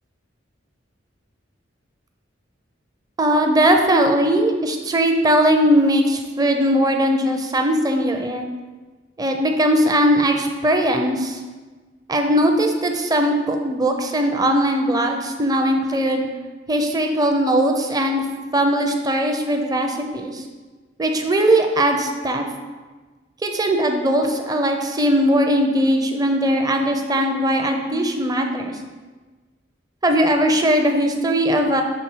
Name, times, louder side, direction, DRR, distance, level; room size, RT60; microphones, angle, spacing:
voice 1, 3.2-8.5 9.2-11.4 12.1-16.2 16.7-18.2 18.5-20.4 21.0-22.4 23.4-28.8 30.0-31.8, right 1 dB, 20° right, 4 dB, 0.6 m, -19 dB
6.9 x 3.5 x 4.5 m, 1.3 s
head